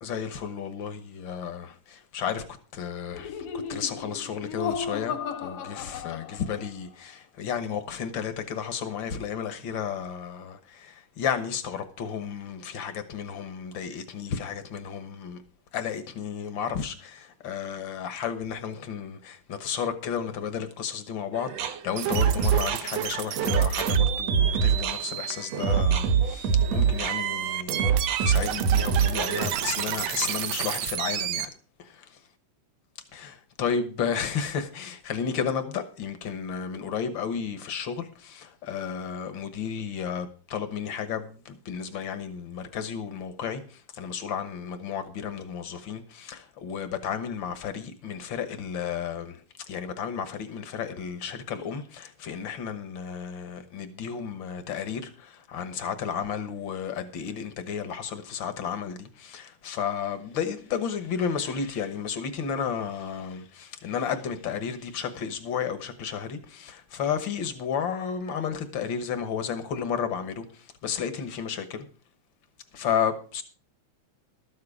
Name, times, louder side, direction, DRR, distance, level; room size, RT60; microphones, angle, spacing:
voice 1, 0.0-2.5 2.7-15.4 15.7-27.8 28.2-31.5 31.8-32.1 33.1-71.8 72.7-73.4, left 7 dB, 65° left, 1.2 m, -33 dB
Laughter, 3.1-6.8, left 7 dB, 90° left, 3.3 m, -35 dB
sound 1, 21.3-29.5, right 7 dB, 65° right, 1.9 m, -24 dB
sound 2, 22.0-31.5, right 11 dB, 85° right, 2.5 m, -32 dB
13.0 x 9.5 x 4.9 m
omnidirectional pair, 3.7 m